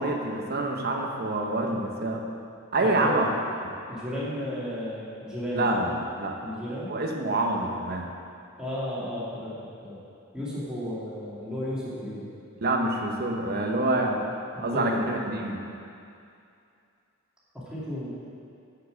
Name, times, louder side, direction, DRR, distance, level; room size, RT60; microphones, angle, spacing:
voice 1, 0.0-2.2 2.7-3.3 3.6-3.7 5.5-6.4 6.8-8.1 12.6-14.2 14.6-15.6, right 2 dB, 50° right, 1 dB, 1.0 m, -27 dB
voice 2, 2.8-3.2 3.9-5.9 6.4-6.9 8.6-9.6 9.8-10.0 10.3-12.3 14.5-15.0 17.7-18.1, equal, 5° right, -10 dB, 2.5 m, -33 dB
7.3 x 7.1 x 6.4 m, 2.5 s
head